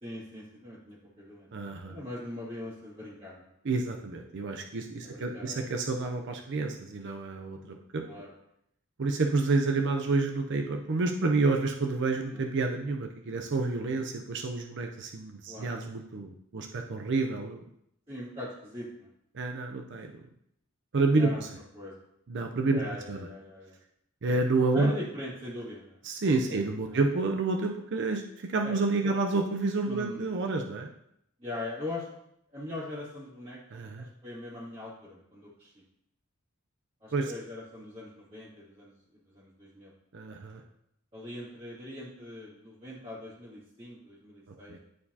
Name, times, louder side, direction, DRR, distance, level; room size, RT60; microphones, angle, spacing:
voice 1, 0.0-1.5 1.9-3.5 5.0-5.6 8.0-8.3 12.3-12.4 15.5-15.7 18.1-19.1 21.2-21.5 21.7-22.0 22.7-23.7 24.7-26.0 26.4-26.6 26.9-27.0 28.6-28.8 29.0-29.1 29.9-30.2 31.4-32.1 32.5-33.6 34.0-35.7 37.0-39.9 41.1-44.8, left 1 dB, 30° right, -10 dB, 2.4 m, -41 dB
voice 2, 1.5-2.0 3.6-8.0 9.0-17.6 19.3-20.1 20.9-21.5 22.3-22.8 23.1-23.3 24.2-24.9 26.0-30.9 33.7-34.1 37.1-37.3 40.1-40.6 44.7-44.8, right 3 dB, 60° right, 3 dB, 0.6 m, -29 dB
10.5 x 4.6 x 2.8 m, 0.76 s
head